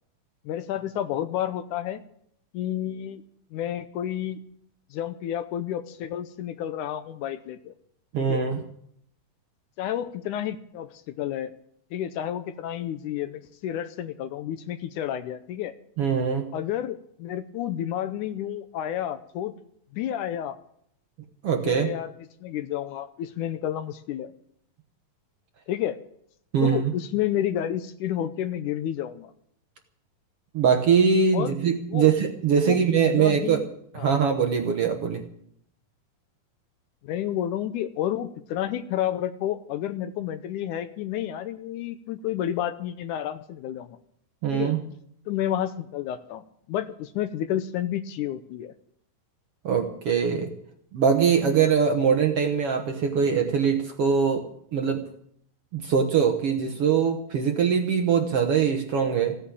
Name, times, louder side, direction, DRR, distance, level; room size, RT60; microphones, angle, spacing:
voice 1, 0.5-2.0 2.5-3.2 3.5-4.4 4.9-7.7 8.2-8.4 9.8-11.5 11.9-15.7 16.5-19.5 19.9-20.6 21.6-22.1 22.4-24.3 25.7-26.0 26.6-29.3 31.3-31.5 31.9-32.1 32.6-32.8 33.1-33.6 34.0-34.2 37.0-44.0 44.5-44.7 45.3-48.7, left 11 dB, 75° left, 11 dB, 2.1 m, -30 dB
voice 2, 8.1-8.6 16.0-16.5 21.4-21.9 26.5-26.9 30.5-33.7 33.9-35.2 44.4-44.8 49.6-50.5 50.9-55.1 55.7-59.4, right 6 dB, 60° right, 5 dB, 1.8 m, -22 dB
16.0 x 9.5 x 8.6 m, 0.69 s
omnidirectional pair, 3.8 m